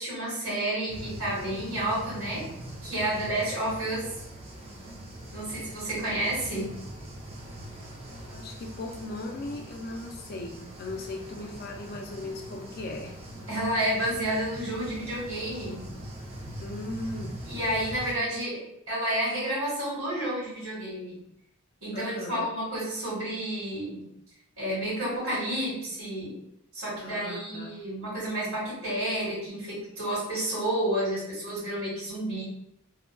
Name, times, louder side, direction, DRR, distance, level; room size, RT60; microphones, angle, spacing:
voice 1, 0.0-2.4 2.8-4.1 5.3-6.8 13.5-15.9 17.5-18.6 18.9-21.2 21.8-24.1 24.6-26.4 26.7-32.4, right 1 dB, 85° right, -9 dB, 1.4 m, -30 dB
sound 1, 0.9-18.1, right 1 dB, 25° right, 0.4 m, -42 dB
voice 2, 8.2-13.1 16.6-17.4 21.9-22.5 27.0-27.7, left 2 dB, 45° left, 2 dB, 0.3 m, -38 dB
2.7 x 2.2 x 2.5 m, 0.79 s
head